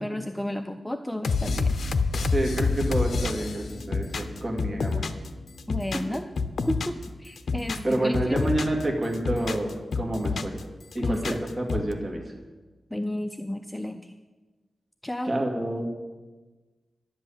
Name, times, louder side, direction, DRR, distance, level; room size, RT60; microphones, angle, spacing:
voice 1, 0.0-1.7 5.7-6.2 6.7-8.4 11.0-11.4 12.9-14.1 15.0-15.3, left 1 dB, 5° left, 7 dB, 0.4 m, -32 dB
sound 1, 1.2-5.3 5.6-7.0 7.4-8.8 9.1-10.6 10.9-11.9, left 4 dB, 65° left, 0.7 m, -28 dB
voice 2, 2.3-5.1 5.9-6.0 7.8-10.6 10.9-12.2 15.2-15.9, right 1 dB, 30° right, 0 dB, 2.3 m, -28 dB
11.0 x 7.8 x 8.8 m, 1.3 s
wide cardioid pair, 175°, 0 cm